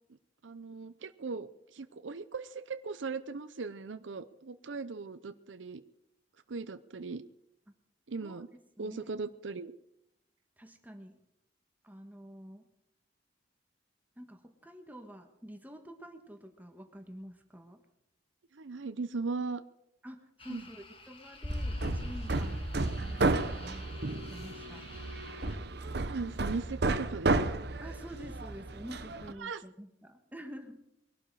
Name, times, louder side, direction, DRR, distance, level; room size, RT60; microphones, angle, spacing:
voice 1, 0.4-5.8 6.5-7.2 8.1-8.5 8.8-9.7 18.5-19.6 20.5-20.6 25.8-27.6 29.4-29.6, right 4 dB, 90° right, 12 dB, 0.7 m, -38 dB
voice 2, 8.8-9.1 10.6-11.2 11.8-12.7 14.2-17.8 20.0-24.8 27.8-31.0, equal, 10° right, 5 dB, 1.5 m, -48 dB
sound 1, 20.4-25.6, left 1 dB, 30° left, 1.8 m, -42 dB
Hammer, 21.5-29.3, right 2 dB, 60° right, 1.0 m, -33 dB
21.5 x 12.0 x 4.8 m, 0.82 s
head